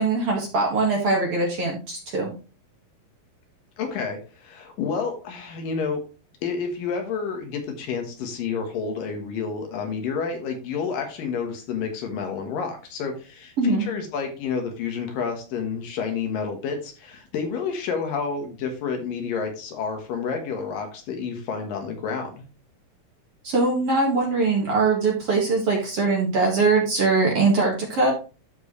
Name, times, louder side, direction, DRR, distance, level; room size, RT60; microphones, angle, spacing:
voice 1, 0.0-2.3 13.6-13.9 23.4-28.1, right 3 dB, 50° right, -1 dB, 2.4 m, -22 dB
voice 2, 3.8-6.0 6.4-22.4, left 5 dB, 70° left, 4 dB, 3.0 m, -29 dB
12.5 x 4.6 x 3.2 m, 0.33 s
omnidirectional pair, 4.1 m